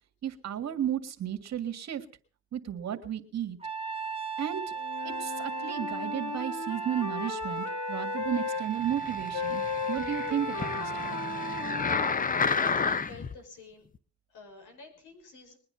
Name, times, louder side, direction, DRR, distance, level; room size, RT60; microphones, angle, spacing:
voice 1, 0.2-2.0 2.5-3.6 4.4-4.6 5.0-9.6 9.9-11.1, right 10 dB, 60° right, 7 dB, 1.9 m, -33 dB
Trumpet, 3.6-12.2, right 6 dB, 20° right, 1.3 m, -36 dB
Wind instrument woodwind instrument, 4.7-8.6 9.3-12.9, left 8 dB, 65° left, 1.4 m, -37 dB
sound 1, 8.8-13.3 13.9-14.0, left 5 dB, 30° left, 0.8 m, -31 dB
voice 2, 11.9-13.9 14.3-15.6, left 4 dB, 80° left, 4 dB, 6.1 m, -49 dB
21.5 x 9.7 x 5.7 m, 0.41 s
cardioid pair, 90°, 30 cm